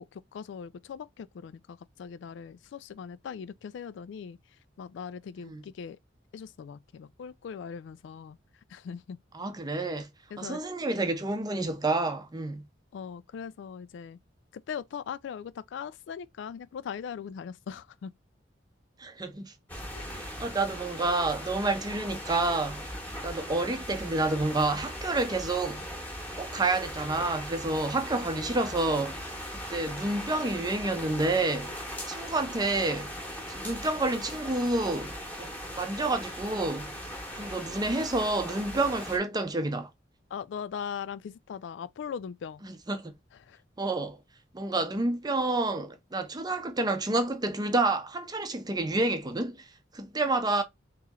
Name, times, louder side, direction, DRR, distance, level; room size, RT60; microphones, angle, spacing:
voice 1, 0.1-4.4 4.8-6.0 6.3-8.4 8.7-9.2 10.3-10.6 12.9-14.2 14.5-18.1 19.9-20.0 40.3-42.6 43.3-43.6, left 7 dB, 70° left, 0.3 m, -40 dB
voice 2, 9.3-10.1 10.4-12.6 19.0-19.5 20.1-22.9 23.2-25.8 26.4-31.8 32.1-33.1 33.5-35.1 35.4-36.9 37.3-39.9 42.6-43.1 43.8-44.2 44.5-49.7 49.9-50.6, right 2 dB, 20° right, 0.6 m, -29 dB
sound 1, 19.7-39.2, equal, 10° left, 1.0 m, -39 dB
3.1 x 2.9 x 3.6 m
head